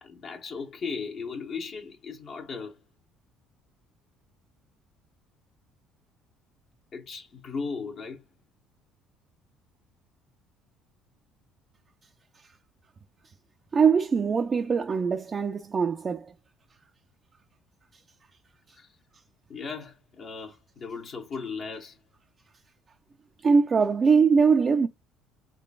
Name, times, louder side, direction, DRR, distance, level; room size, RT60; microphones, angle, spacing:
voice 1, 0.0-2.8 6.9-8.2 18.7-18.9 19.5-22.0, left 5 dB, 55° left, 1.0 m, -37 dB
voice 2, 13.7-16.3 23.4-24.9, right 5 dB, 35° right, 0.4 m, -22 dB
3.8 x 3.3 x 2.3 m
supercardioid pair, 85°, 0 cm